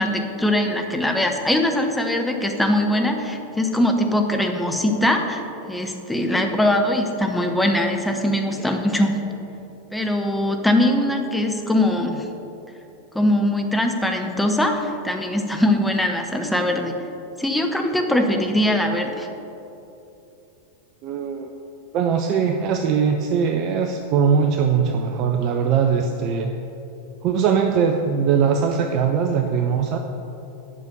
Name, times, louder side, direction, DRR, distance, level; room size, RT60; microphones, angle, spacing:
voice 1, 0.0-5.4 5.7-9.2 9.9-12.3 13.1-16.9 17.4-19.3, left 1 dB, 5° left, 3 dB, 0.9 m, -21 dB
voice 2, 21.0-21.5 21.9-26.5 27.2-30.0, right 6 dB, 40° right, 4 dB, 0.5 m, -21 dB
8.6 x 6.1 x 6.8 m, 2.9 s
figure-of-eight pair, 90°, 0 cm